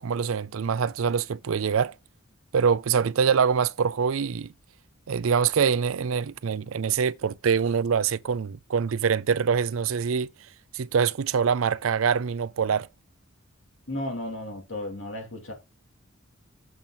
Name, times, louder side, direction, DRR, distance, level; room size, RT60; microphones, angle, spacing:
voice 1, 0.0-2.0 2.5-4.5 5.1-10.3 10.7-12.9, right 6 dB, 80° right, 0.5 m, -24 dB
voice 2, 13.9-15.5, left 1 dB, 65° left, 2.9 m, -34 dB
7.5 x 5.3 x 4.3 m
head